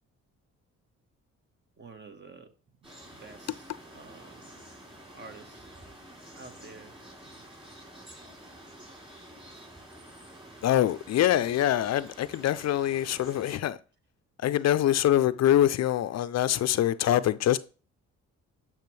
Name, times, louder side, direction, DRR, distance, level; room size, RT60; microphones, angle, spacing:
voice 1, 1.8-2.5 2.8-3.7 3.9-4.6 5.1-5.7 6.3-7.0 7.2-7.4, right 4 dB, 35° right, 1.3 m, -49 dB
sound 1, 2.8-13.6, right 1 dB, 20° right, 4.4 m, -49 dB
voice 2, 10.6-13.8 14.4-17.6, left 12 dB, 60° left, 0.5 m, -24 dB
10.5 x 6.1 x 3.3 m
cardioid pair, 90°, 30 cm